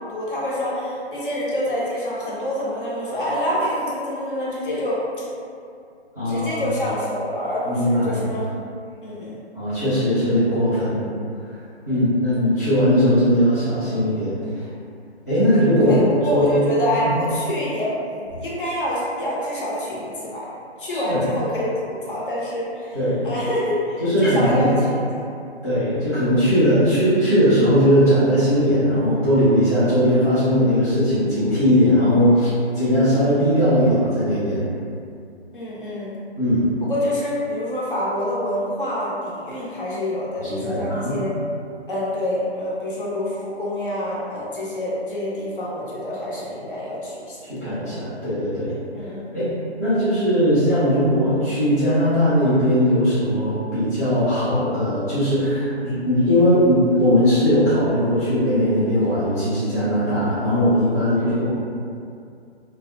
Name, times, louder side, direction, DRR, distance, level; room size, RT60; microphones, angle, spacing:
voice 1, 0.1-5.2 6.3-8.5 9.0-9.4 11.9-12.0 15.8-20.5 20.8-21.8 22.0-23.0 23.2-25.2 35.5-36.2 36.8-41.3 41.9-47.4 48.9-49.5 61.2-61.5, left 1 dB, 50° left, -6 dB, 0.7 m, -26 dB
voice 2, 6.2-6.5 7.7-8.3 9.5-11.0 11.9-14.7 15.3-16.0 16.3-16.5 17.0-17.1 20.9-21.2 22.9-23.2 24.0-24.7 25.6-34.7 36.4-36.7 40.4-41.2 47.6-48.7 49.3-49.4 49.8-61.6, equal, 15° left, -18 dB, 0.4 m, -19 dB
2.3 x 2.0 x 2.6 m, 2.4 s
hypercardioid pair, 160°, 33 cm